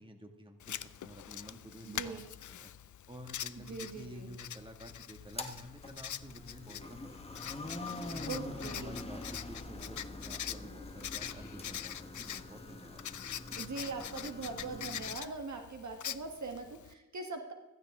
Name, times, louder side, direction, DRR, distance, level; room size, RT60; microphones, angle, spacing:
voice 1, 0.0-2.2 2.5-2.7 3.1-7.2 8.1-13.0, equal, 15° right, 4 dB, 2.2 m, -50 dB
Writing, 0.6-16.9, left 10 dB, 65° left, 0.6 m, -44 dB
voice 2, 1.8-2.3 3.6-4.3 8.2-8.9 13.6-17.5, right 4 dB, 60° right, 4 dB, 1.6 m, -42 dB
sound 1, 5.2-15.1, left 2 dB, 20° left, 1.4 m, -45 dB
15.5 x 15.5 x 3.8 m, 1.1 s
wide cardioid pair, 90°, 32 cm